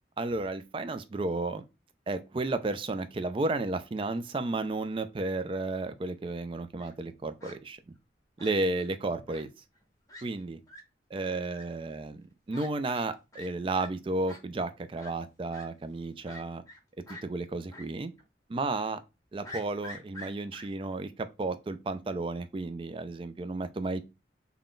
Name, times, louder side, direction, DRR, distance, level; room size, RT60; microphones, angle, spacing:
voice 1, 0.2-1.6 2.1-7.8 8.4-9.5 10.2-10.6 11.1-16.6 17.1-18.1 18.5-19.0 19.3-24.0, right 2 dB, 30° right, 0.3 m, -33 dB
Fowl, 6.5-6.9 7.4-7.6 8.4-8.9 9.3-9.4 9.8-9.9 10.1-10.2 10.7-10.8 11.5-11.6 12.5-12.7 12.9-13.1 13.3-13.5 13.7-13.9 14.3-14.4 15.0-15.1 15.5-15.7 16.3-16.8 17.1-17.2 17.7-17.9 18.2-18.3 19.4-20.7, left 1 dB, 20° left, 1.0 m, -46 dB
3.7 x 2.2 x 3.7 m
head